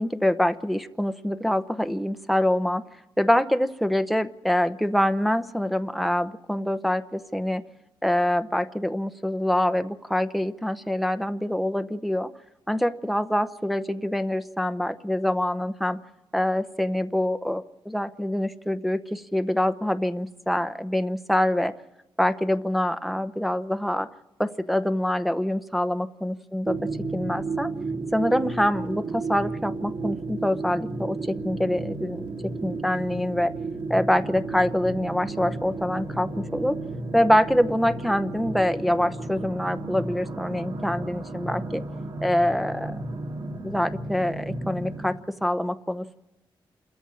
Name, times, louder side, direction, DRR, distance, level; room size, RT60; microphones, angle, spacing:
voice 1, 0.0-2.8 3.2-7.6 8.0-12.3 12.7-16.0 16.3-21.7 22.2-24.1 24.4-26.8 27.1-27.7 28.1-33.5 33.9-36.8 37.1-41.8 42.2-43.0 43.6-46.2, left 1 dB, ahead, 9 dB, 0.8 m, -25 dB
sound 1, 26.7-45.1, right 3 dB, 65° right, 2.4 m, -33 dB
28.5 x 14.0 x 8.9 m, 0.98 s
wide cardioid pair, 130°, 9 cm